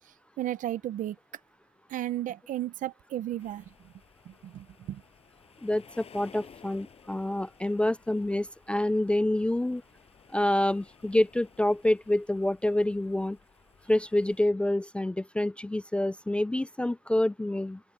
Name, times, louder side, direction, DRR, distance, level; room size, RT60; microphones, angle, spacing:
voice 1, 0.4-1.2 1.9-3.6 4.3-5.0, right 13 dB, 70° right, 0.9 m, -34 dB
sound 1, 3.4-14.4, left 7 dB, 50° left, 6.5 m, -57 dB
voice 2, 5.6-9.8 10.3-13.4 13.9-17.8, left 1 dB, 10° left, 0.3 m, -27 dB
open air
cardioid pair, 105°, 14 cm